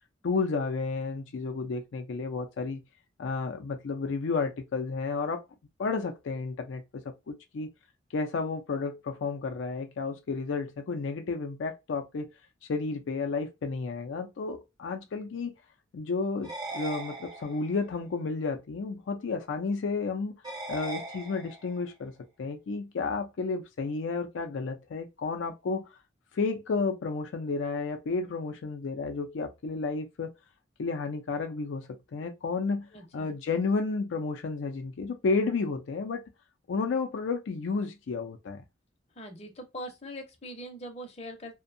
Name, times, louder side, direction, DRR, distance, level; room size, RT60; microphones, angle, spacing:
voice 1, 0.2-2.8 3.2-5.4 5.8-7.7 8.1-12.3 12.7-15.5 15.9-20.4 20.7-22.1 22.4-25.9 26.3-30.3 30.8-32.9 33.1-36.2 36.7-38.6, left 4 dB, 75° left, 0.4 m, -32 dB
sound 1, 16.4-17.8 20.4-21.8, right 2 dB, 20° right, 0.5 m, -39 dB
voice 2, 32.9-33.3 39.2-41.6, equal, 35° left, 0.6 m, -42 dB
2.6 x 2.1 x 2.5 m
head